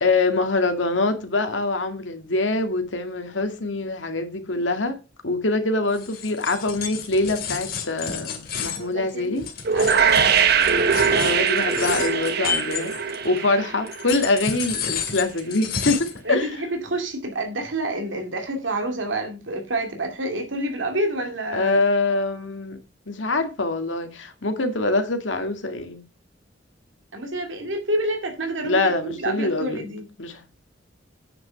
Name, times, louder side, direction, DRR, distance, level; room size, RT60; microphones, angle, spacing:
voice 1, 0.0-5.0 5.2-9.4 11.1-12.9 13.2-16.5 21.5-22.8 23.1-26.0 28.6-29.8 30.2-30.4, left 2 dB, 85° left, 2.0 m, -24 dB
sound 1, 5.9-13.4 13.9-16.2, left 6 dB, 55° left, 2.4 m, -31 dB
voice 2, 8.6-9.5 9.7-10.5 16.2-21.8 27.1-30.1, right 1 dB, 85° right, 2.4 m, -28 dB
sound 2, 9.6-14.5, right 6 dB, 60° right, 1.1 m, -22 dB
9.0 x 6.2 x 5.7 m
head